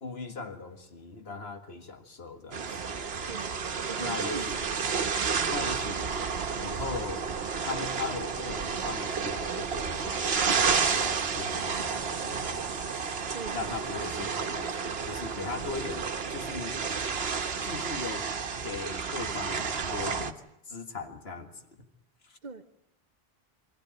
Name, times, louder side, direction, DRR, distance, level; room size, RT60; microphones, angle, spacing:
voice 1, 0.0-3.0 4.0-4.7 5.5-6.2 6.6-7.3 7.6-12.6 13.5-16.8 17.6-18.3 18.6-21.5 22.2-22.4, left 4 dB, 80° left, 6 dB, 2.0 m, -39 dB
sound 1, 2.5-20.3, right 5 dB, 75° right, 1.3 m, -31 dB
voice 2, 3.3-3.6 3.9-4.5 4.8-4.9 13.3-13.7 22.4-22.7, right 4 dB, 50° right, 9 dB, 1.1 m, -41 dB
24.0 x 15.5 x 9.3 m, 0.83 s
omnidirectional pair, 1.0 m